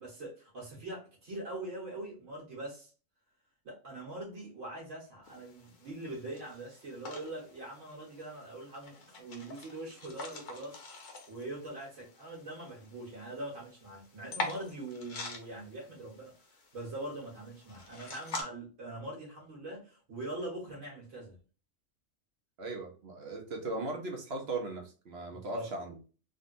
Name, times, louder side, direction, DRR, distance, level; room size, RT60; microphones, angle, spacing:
voice 1, 0.0-2.9 3.6-10.8 11.3-16.3 16.7-21.3 25.3-25.7, right 1 dB, 70° right, 1.8 m, -42 dB
sound 1, 5.2-18.4, left 3 dB, 45° left, 0.8 m, -46 dB
voice 2, 22.6-26.0, right 2 dB, 55° right, 1.0 m, -38 dB
3.6 x 2.5 x 2.5 m
omnidirectional pair, 1.3 m